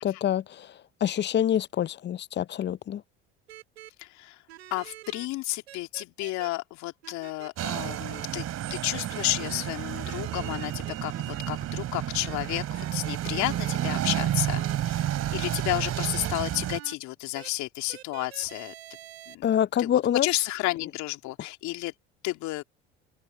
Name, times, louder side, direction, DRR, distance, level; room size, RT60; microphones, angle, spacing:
voice 1, 0.0-3.0 19.4-20.3 21.4-21.5, left 10 dB, 35° left, 0.6 m, -26 dB
sound 1, 3.5-3.9 4.5-5.3 5.7-6.5 7.0-7.5 7.8-8.3 8.7-9.6 9.9-11.4 12.2-16.9 17.3-17.5 17.9-19.4, right 14 dB, 85° right, 1.7 m, -46 dB
voice 2, 4.0-4.4 4.7-8.4 8.7-15.0 15.3-18.7 19.3-19.5 19.8-21.9 22.2-22.6, left 18 dB, 65° left, 2.9 m, -32 dB
sound 2, 7.6-16.8, right 12 dB, 55° right, 3.2 m, -31 dB
hypercardioid pair, 65°, 31 cm